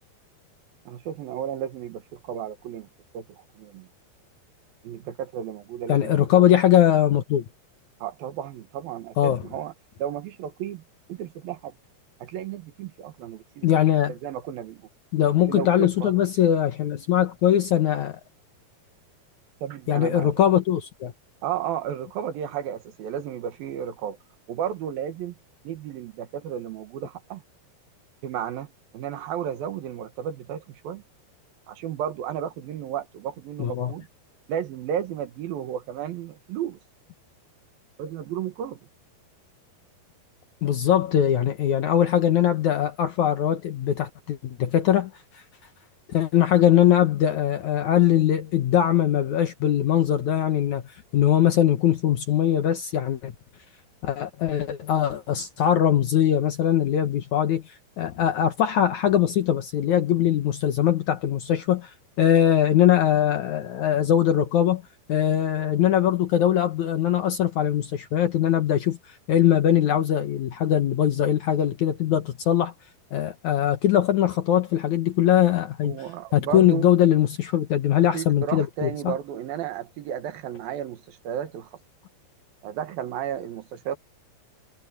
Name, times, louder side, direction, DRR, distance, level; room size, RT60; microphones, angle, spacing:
voice 1, 0.9-2.9 3.1-3.9 4.8-6.4 8.0-9.7 10.0-10.8 11.1-11.7 12.2-13.8 14.1-14.9 15.5-16.1 19.6-20.3 21.4-24.2 24.5-25.3 25.6-27.4 28.2-31.0 31.7-34.1 34.5-36.8 38.0-38.8 75.8-76.9 78.1-81.7 82.6-84.0, right 9 dB, 70° right, 3.0 m, -33 dB
voice 2, 5.9-7.5 9.2-9.4 13.6-14.1 15.1-18.2 19.9-21.1 33.6-33.9 40.6-45.1 46.1-50.8 51.1-53.3 54.0-57.6 58.0-61.9 62.2-64.8 65.1-69.0 69.3-72.7 73.1-76.0 76.3-79.1, left 10 dB, 65° left, 2.0 m, -21 dB
omnidirectional pair, 4.6 m